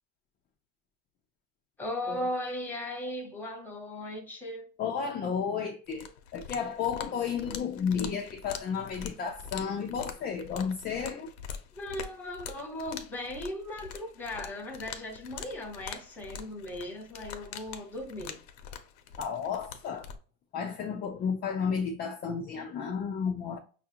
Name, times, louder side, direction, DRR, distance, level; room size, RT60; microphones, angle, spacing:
voice 1, 1.8-4.7 11.8-18.4, left 1 dB, 5° left, 1.1 m, -37 dB
voice 2, 4.8-11.3 19.2-20.1 20.5-23.6, left 6 dB, 30° left, 0.5 m, -32 dB
sound 1, 5.9-20.2, left 7 dB, 85° left, 0.8 m, -44 dB
5.8 x 2.4 x 2.8 m
cardioid pair, 140°, 31 cm